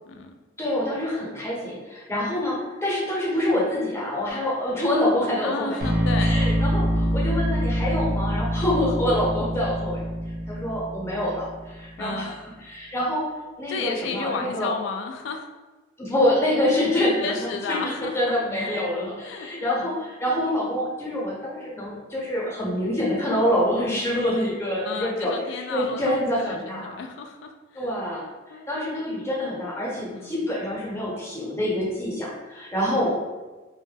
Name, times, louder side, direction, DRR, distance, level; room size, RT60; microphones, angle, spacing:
voice 1, 0.6-5.8 6.2-10.0 10.5-13.3 13.6-14.7 16.0-26.9 27.7-28.3 28.7-33.1, left 1 dB, 15° left, -6 dB, 0.7 m, -26 dB
voice 2, 5.4-6.4 12.0-12.3 13.7-15.5 17.2-18.8 19.2-20.0 24.8-28.0 28.5-29.0 30.1-30.5 32.8-33.1, left 4 dB, 70° left, 5 dB, 0.3 m, -33 dB
sound 1, 5.8-11.8, equal, 55° right, 0.5 m, -25 dB
2.1 x 2.1 x 3.2 m, 1.2 s
head